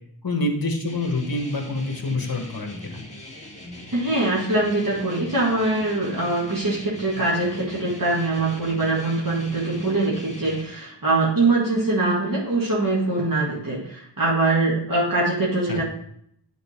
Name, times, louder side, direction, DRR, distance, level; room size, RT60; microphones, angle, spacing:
voice 1, 0.2-3.0 15.7-15.8, left 2 dB, 55° left, 4 dB, 1.4 m, -26 dB
sound 1, 0.9-10.6, left 1 dB, 15° left, 1.8 m, -41 dB
voice 2, 3.9-15.8, right 2 dB, 50° right, -5 dB, 1.9 m, -23 dB
9.3 x 4.1 x 4.4 m, 0.68 s
wide cardioid pair, 70°, 41 cm